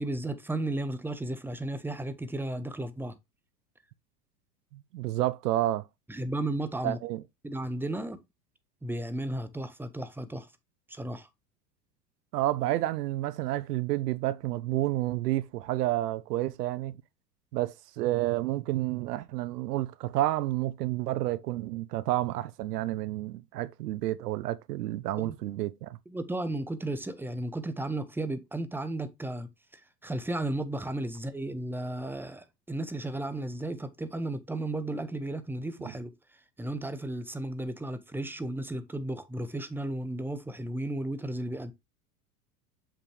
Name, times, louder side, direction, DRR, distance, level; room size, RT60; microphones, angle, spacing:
voice 1, 0.0-3.1 6.1-7.0 7.4-8.2 8.8-10.5 10.9-11.3 25.2-25.4 26.1-36.1 36.6-41.7, right 1 dB, 5° right, 0.8 m, -34 dB
voice 2, 4.9-5.8 6.8-7.2 12.3-16.9 17.5-26.0, right 15 dB, 75° right, 0.7 m, -30 dB
6.9 x 5.7 x 3.2 m
hypercardioid pair, 100°, 47 cm